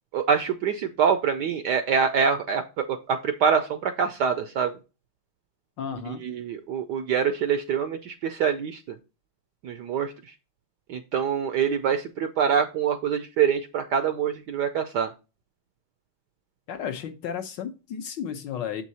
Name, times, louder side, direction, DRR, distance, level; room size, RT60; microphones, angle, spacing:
voice 1, 0.1-4.7 6.1-9.0 9.6-10.1 10.9-15.1, right 7 dB, 70° right, 9 dB, 1.0 m, -25 dB
voice 2, 5.8-6.2 16.7-18.8, left 8 dB, 70° left, 7 dB, 1.3 m, -33 dB
7.2 x 4.6 x 4.1 m, 0.30 s
omnidirectional pair, 2.4 m